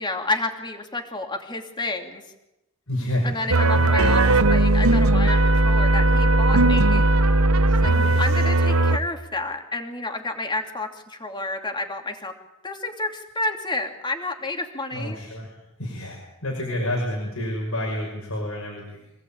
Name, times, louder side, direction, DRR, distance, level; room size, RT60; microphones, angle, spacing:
voice 1, 0.0-2.2 3.2-7.0 7.7-7.9 8.2-12.3 12.6-15.2, left 2 dB, 20° left, 3 dB, 2.7 m, -30 dB
voice 2, 2.9-3.8 7.9-8.2 14.9-15.5 15.8-19.0, left 1 dB, 90° left, -1 dB, 5.9 m, -29 dB
sound 1, 3.5-9.0, right 2 dB, 85° right, 1.1 m, -18 dB
26.0 x 18.0 x 8.8 m, 0.94 s
head